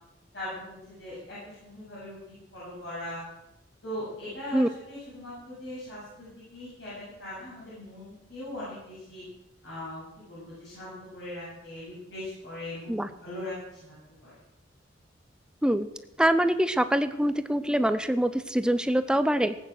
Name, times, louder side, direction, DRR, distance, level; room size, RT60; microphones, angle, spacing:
voice 1, 0.3-3.2 3.8-9.2 9.6-12.9 13.2-13.9 14.2-14.3, left 1 dB, 55° left, -10 dB, 7.8 m, -40 dB
voice 2, 16.2-19.6, right 1 dB, 5° right, 11 dB, 0.6 m, -24 dB
18.5 x 9.2 x 6.4 m, 0.89 s
head